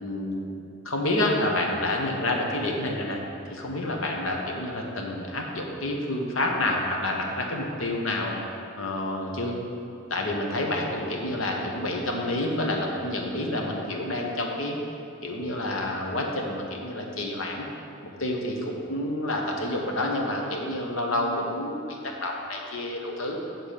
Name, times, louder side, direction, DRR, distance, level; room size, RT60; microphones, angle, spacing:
voice 1, 0.0-0.5 0.8-3.2 3.5-8.4 8.8-9.6 10.1-14.8 15.2-17.7 18.2-23.4, left 1 dB, 80° left, 0 dB, 1.0 m, -28 dB
7.5 x 3.9 x 6.7 m, 2.7 s
head